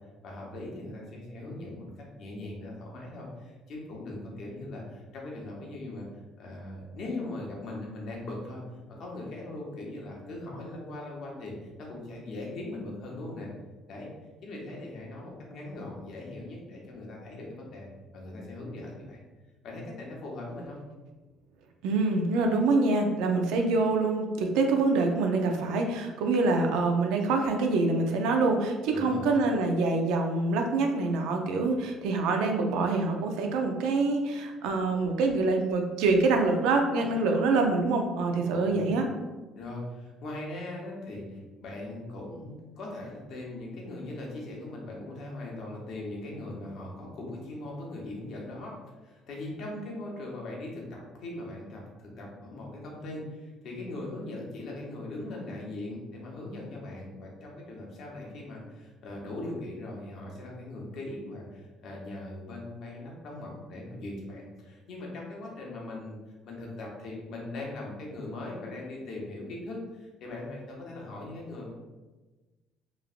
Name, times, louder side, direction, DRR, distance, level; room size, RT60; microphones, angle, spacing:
voice 1, 0.2-1.9 2.1-6.1 6.4-8.6 9.0-13.5 13.9-14.1 14.4-19.2 19.6-20.8 28.9-29.2 38.4-38.9 39.6-48.8 49.0-66.2 66.4-71.7, left 2 dB, 65° left, -2 dB, 0.8 m, -40 dB
voice 2, 21.8-39.1, right 3 dB, 85° right, 3 dB, 0.4 m, -25 dB
3.0 x 2.6 x 2.4 m, 1.2 s
cardioid pair, 105°, 0 cm